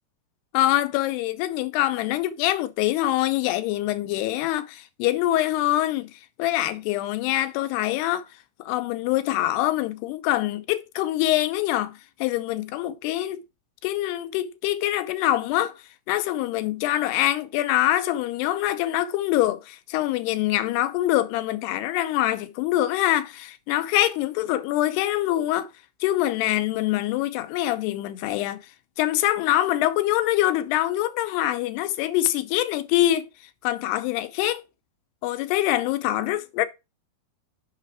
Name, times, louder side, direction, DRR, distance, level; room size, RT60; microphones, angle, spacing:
voice 1, 0.5-6.1 6.4-8.3 8.6-13.4 13.8-15.7 16.1-25.7 26.0-28.6 29.0-33.3 33.6-34.6 35.2-36.7, left 14 dB, 90° left, 2.8 m, -24 dB
6.6 x 5.8 x 4.7 m
omnidirectional pair, 4.6 m